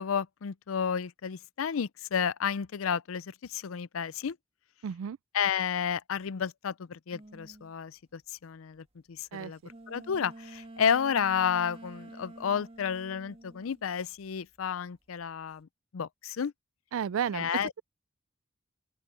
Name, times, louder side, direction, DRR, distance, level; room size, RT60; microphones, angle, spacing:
voice 1, 0.0-4.4 5.3-9.6 9.9-16.5 17.3-17.7, left 7 dB, 85° left, 0.5 m, -31 dB
voice 2, 4.8-5.2 9.3-9.5 16.9-17.5, right 8 dB, 85° right, 0.4 m, -32 dB
sound 1, 7.1-7.7 9.7-14.4 14.6-15.4, right 1 dB, 30° right, 1.9 m, -49 dB
open air
head